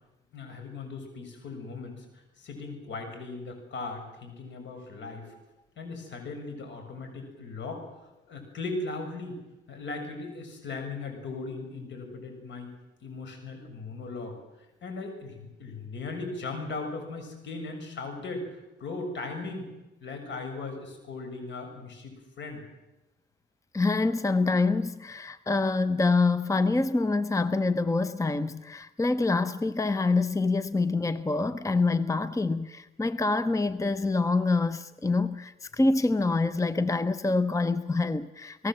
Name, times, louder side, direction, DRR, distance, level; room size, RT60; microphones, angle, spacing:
voice 1, 0.3-5.3 5.8-7.9 8.3-9.4 9.7-12.7 13.0-19.7 20.0-22.6, left 3 dB, 70° left, 5 dB, 6.8 m, -38 dB
voice 2, 23.7-38.7, left 3 dB, 15° left, 14 dB, 0.8 m, -26 dB
29.0 x 19.0 x 7.8 m, 1.0 s
cardioid pair, 90°, 20 cm